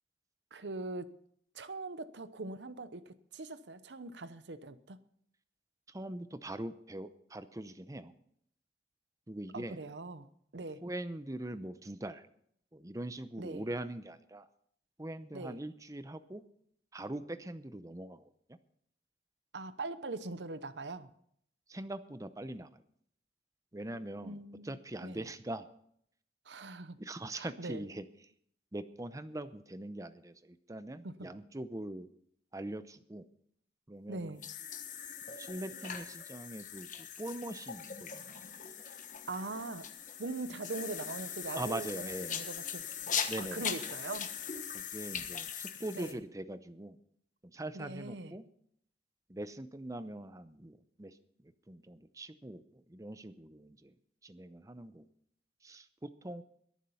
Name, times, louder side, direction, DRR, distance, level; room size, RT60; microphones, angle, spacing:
voice 1, 0.5-1.2 1.5-5.0 9.5-10.3 10.5-10.8 13.4-13.6 15.3-15.6 19.5-21.1 24.2-25.2 26.5-27.0 27.4-27.8 31.0-31.3 34.1-34.4 39.3-39.9 40.2-42.9 43.4-44.3 46.0-46.2 47.7-48.3, right 3 dB, 85° right, 0.9 m, -42 dB
voice 2, 5.9-8.1 9.3-9.8 10.5-12.3 12.7-14.5 15.0-16.4 16.9-18.6 21.7-22.8 23.7-25.7 27.0-28.3 28.7-32.1 32.5-33.3 33.9-34.4 35.3-38.4 41.5-42.5 43.3-43.9 44.7-47.0 47.4-48.4 49.3-51.2 51.4-53.9 54.2-55.1 55.6-56.4, right 1 dB, 20° right, 0.7 m, -42 dB
sound 1, 34.4-46.1, left 7 dB, 45° left, 1.2 m, -40 dB
22.0 x 7.3 x 5.6 m
head